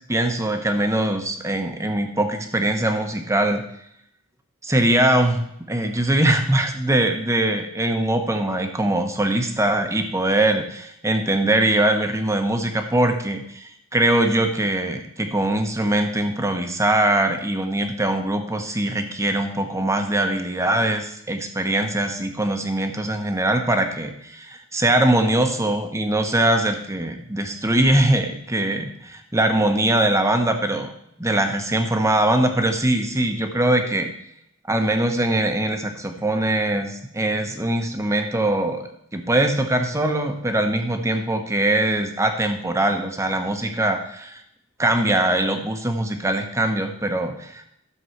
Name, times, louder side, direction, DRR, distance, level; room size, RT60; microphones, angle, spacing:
voice 1, 0.1-3.6 4.6-30.9 31.2-34.1 34.7-44.4 44.8-47.7, right 1 dB, 15° right, 5 dB, 1.2 m, -22 dB
13.0 x 7.2 x 4.7 m, 0.73 s
head